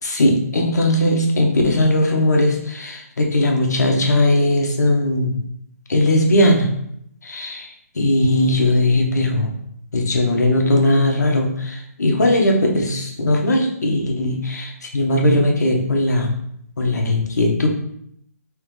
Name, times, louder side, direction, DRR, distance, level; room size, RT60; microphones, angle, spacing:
voice 1, 0.0-5.4 5.9-6.7 7.2-9.5 9.9-16.3 16.8-17.7, left 1 dB, 90° left, 1 dB, 1.1 m, -18 dB
3.6 x 3.3 x 3.2 m, 0.73 s
hypercardioid pair, 175°, 9 cm